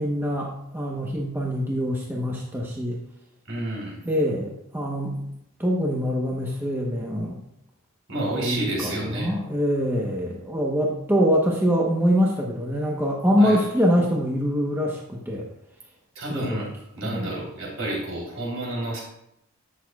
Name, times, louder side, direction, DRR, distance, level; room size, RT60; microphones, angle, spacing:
voice 1, 0.0-3.0 4.0-5.2 5.6-7.4 8.1-15.5 16.3-16.7 17.0-17.3, equal, 10° right, -2 dB, 0.9 m, -24 dB
voice 2, 3.5-4.0 8.1-9.3 13.4-13.6 16.1-16.7 17.0-19.0, right 1 dB, 65° right, -3 dB, 3.3 m, -30 dB
11.0 x 8.3 x 2.3 m, 0.77 s
head